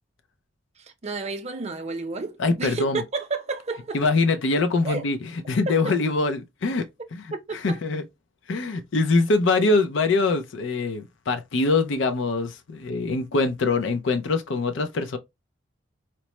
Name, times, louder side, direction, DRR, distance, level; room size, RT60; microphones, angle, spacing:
voice 1, 1.0-4.0 4.8-5.0 5.7-5.9 7.5-7.8, right 3 dB, 35° right, 0.6 m, -31 dB
voice 2, 2.4-3.0 3.9-6.9 7.1-8.0 8.5-15.2, left 3 dB, 70° left, 0.5 m, -23 dB
4.4 x 2.0 x 2.9 m
head